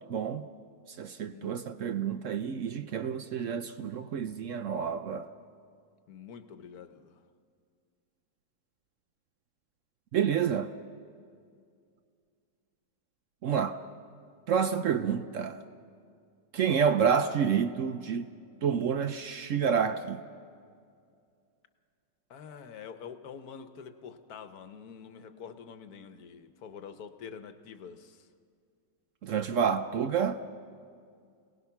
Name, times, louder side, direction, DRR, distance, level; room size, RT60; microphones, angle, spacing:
voice 1, 0.1-0.5 0.9-5.3 10.1-10.7 13.4-13.8 14.5-15.6 16.5-18.3 18.6-20.2 29.2-30.4, right 7 dB, 70° right, 10 dB, 0.7 m, -29 dB
voice 2, 6.1-7.2 22.3-28.3, left 7 dB, 60° left, 9 dB, 1.3 m, -46 dB
27.5 x 18.5 x 5.9 m, 2.3 s
omnidirectional pair, 2.0 m